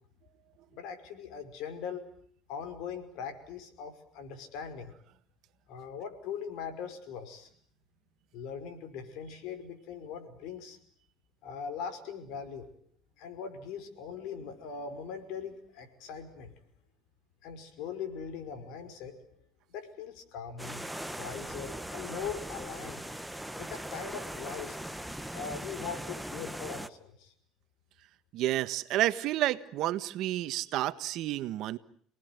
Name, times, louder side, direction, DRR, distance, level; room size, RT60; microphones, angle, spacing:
voice 1, 0.7-2.0 2.5-4.9 5.7-7.5 8.3-10.8 11.4-12.7 13.2-16.5 17.4-19.2 19.7-20.8 21.1-23.0 23.6-24.8 25.3-27.3, left 6 dB, 70° left, 8 dB, 5.4 m, -41 dB
sound 1, 20.6-26.9, right 1 dB, ahead, 1.1 m, -40 dB
voice 2, 28.3-31.8, right 14 dB, 60° right, 12 dB, 1.5 m, -30 dB
29.0 x 19.5 x 9.6 m, 0.63 s
cardioid pair, 115°, 0 cm